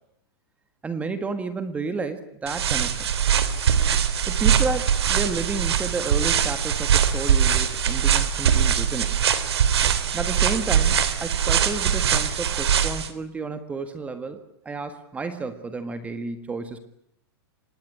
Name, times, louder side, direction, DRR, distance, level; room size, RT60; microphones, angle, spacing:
voice 1, 0.8-3.0 4.3-9.2 10.1-14.4 14.6-16.8, right 4 dB, 10° right, 10 dB, 1.6 m, -31 dB
sound 1, 2.5-13.1, right 8 dB, 90° right, 3.4 m, -22 dB
26.0 x 20.5 x 10.0 m, 0.75 s
supercardioid pair, 155°, 13 cm